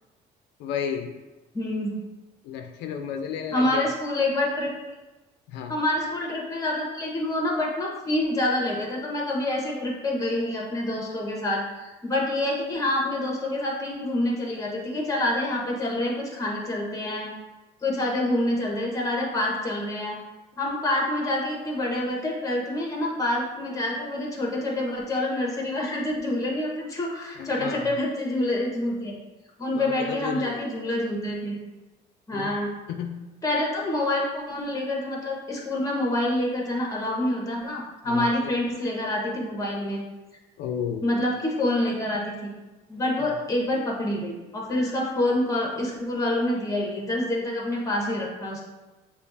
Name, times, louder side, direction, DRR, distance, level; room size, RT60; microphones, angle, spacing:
voice 1, 0.6-1.1 2.4-3.8 5.5-5.7 27.4-27.9 29.7-30.6 32.3-32.5 32.9-33.2 38.1-38.3 40.6-41.0, left 7 dB, 90° left, 5 dB, 0.4 m, -32 dB
voice 2, 1.5-1.9 3.5-4.7 5.7-17.3 17.8-20.2 20.6-29.2 29.6-31.6 32.3-32.7 33.4-40.0 41.0-42.5 42.9-48.6, left 1 dB, 20° left, -2 dB, 1.2 m, -27 dB
6.6 x 2.4 x 2.7 m, 1.1 s
cardioid pair, 110°, 17 cm